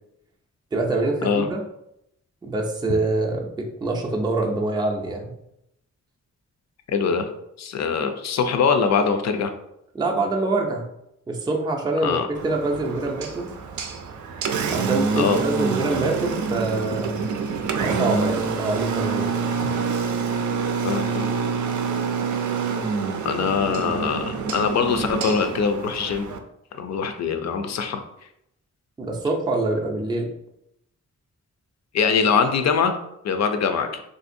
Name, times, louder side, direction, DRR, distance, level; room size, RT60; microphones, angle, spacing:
voice 1, 0.7-1.6 2.4-5.4 9.9-10.9 11.3-13.5 14.7-17.3 17.7-19.4 29.0-30.3, right 2 dB, 15° right, 1 dB, 0.4 m, -25 dB
voice 2, 6.9-7.3 7.6-9.5 12.0-12.3 15.2-15.4 20.8-21.3 23.2-26.3 26.8-28.0 31.9-32.9 33.2-34.0, left 5 dB, 60° left, 7 dB, 0.4 m, -22 dB
Engine, 12.3-26.4, right 5 dB, 75° right, 0.5 m, -27 dB
3.6 x 2.6 x 2.5 m, 0.80 s
wide cardioid pair, 130°, 30 cm